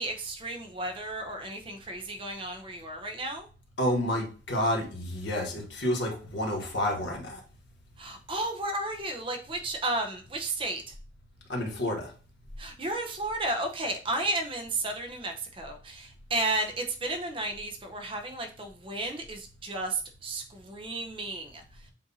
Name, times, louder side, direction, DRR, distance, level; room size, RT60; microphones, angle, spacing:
voice 1, 0.0-3.5 8.0-10.8 12.6-21.6, right 2 dB, 25° right, 5 dB, 0.6 m, -33 dB
voice 2, 3.8-7.4 11.5-12.1, left 1 dB, 65° left, 0 dB, 1.4 m, -29 dB
7.4 x 2.6 x 2.7 m, 0.37 s
head